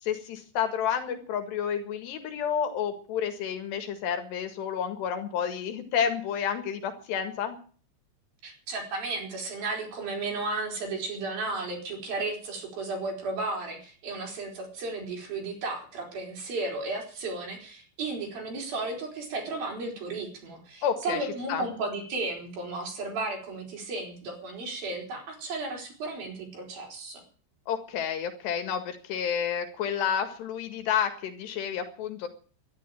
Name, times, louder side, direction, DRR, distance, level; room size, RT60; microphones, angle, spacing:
voice 1, 0.0-7.6 20.8-21.7 27.7-32.3, left 8 dB, 75° left, 8 dB, 3.8 m, -30 dB
voice 2, 8.4-27.2, right 3 dB, 55° right, 1 dB, 6.3 m, -34 dB
13.5 x 11.5 x 9.0 m, 0.42 s
omnidirectional pair, 5.0 m